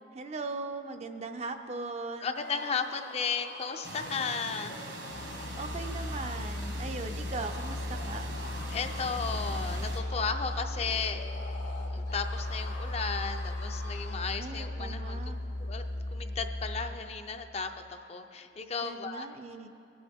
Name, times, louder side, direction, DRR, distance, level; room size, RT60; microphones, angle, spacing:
voice 1, 0.1-2.3 5.6-8.4 14.4-15.4 18.8-19.7, right 3 dB, 35° right, 7 dB, 0.5 m, -39 dB
sound 1, 2.2-14.3, left 2 dB, 70° left, 1.4 m, -46 dB
voice 2, 2.2-4.8 8.7-11.2 11.9-15.3 15.6-15.8 16.1-19.3, left 5 dB, 35° left, 7 dB, 0.5 m, -34 dB
sound 2, 3.8-10.0, right 2 dB, 70° right, 1.4 m, -43 dB
Musical instrument, 5.1-17.1, left 1 dB, 85° left, 1.3 m, -36 dB
19.5 x 7.8 x 3.5 m, 2.7 s
head